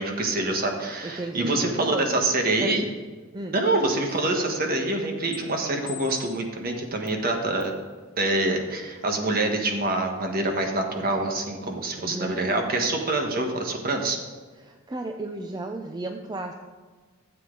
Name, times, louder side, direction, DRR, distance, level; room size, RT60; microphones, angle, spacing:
voice 1, 0.0-2.9 3.5-7.7 8.2-14.2, right 2 dB, 50° right, 3 dB, 1.4 m, -26 dB
voice 2, 1.0-2.3 2.6-2.8 3.3-3.6 12.0-12.5 14.6-16.5, right 2 dB, 20° right, 4 dB, 0.5 m, -34 dB
sound 1, 3.6-3.7 4.1-4.7 5.3-5.4 5.9-6.4 7.1-7.2 7.6-7.8, left 9 dB, 65° left, 1.5 m, -44 dB
13.0 x 7.7 x 3.9 m, 1.4 s
head